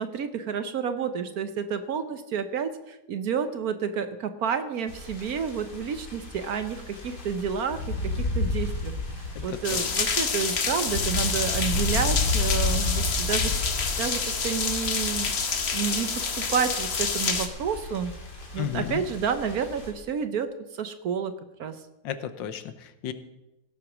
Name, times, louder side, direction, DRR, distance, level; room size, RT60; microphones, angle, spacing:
voice 1, 0.0-8.9 9.4-13.5 14.0-18.1 18.5-21.3 21.6-21.8, right 7 dB, 60° right, 10 dB, 1.1 m, -30 dB
sound 1, 4.9-19.9, left 3 dB, 60° left, 3.1 m, -32 dB
voice 2, 9.3-9.8 18.6-19.0 22.0-23.1, left 10 dB, 80° left, 11 dB, 1.6 m, -33 dB
sound 2, 9.6-17.5, left 5 dB, 40° left, 1.2 m, -28 dB
17.0 x 7.7 x 6.0 m, 0.95 s
omnidirectional pair, 2.0 m